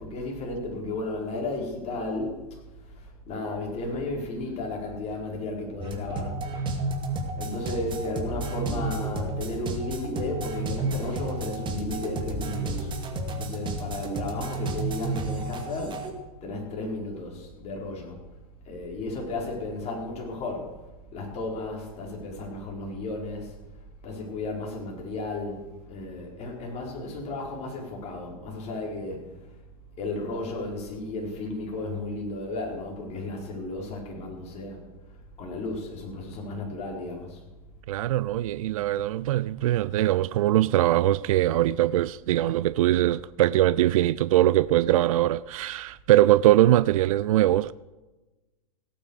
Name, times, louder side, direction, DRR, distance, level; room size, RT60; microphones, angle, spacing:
voice 1, 0.0-6.4 6.7-6.8 7.3-12.9 13.3-16.1 16.4-18.2 18.6-20.8 21.1-23.6 24.0-29.5 30.0-34.9 35.4-37.4 38.1-38.2, left 2 dB, 35° left, 4.9 m, -34 dB
sound 1, 5.8-16.1, right 2 dB, 25° right, 2.2 m, -31 dB
voice 2, 37.9-47.7, right 14 dB, 60° right, 0.4 m, -22 dB
16.5 x 9.0 x 6.6 m
hypercardioid pair, 100°, 20 cm